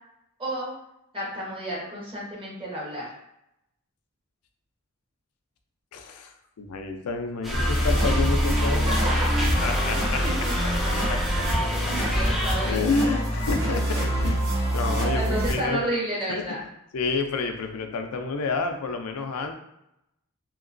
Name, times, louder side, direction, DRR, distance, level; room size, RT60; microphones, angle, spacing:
voice 1, 0.4-0.7 1.1-3.1 8.9-9.5 9.8-9.9 10.2-10.5 10.9-11.3 12.1-13.0 15.1-16.6, right 1 dB, 25° right, -6 dB, 1.1 m, -31 dB
voice 2, 5.9-9.0 9.6-10.2 11.1-11.4 12.7-15.8 16.3-16.4 16.9-19.5, left 4 dB, 85° left, 5 dB, 0.4 m, -29 dB
sound 1, 7.4-12.7, equal, ahead, 0.5 m, -29 dB
sound 2, 7.5-15.5, equal, 55° right, 1.2 m, -25 dB
2.9 x 2.8 x 2.5 m, 0.82 s
head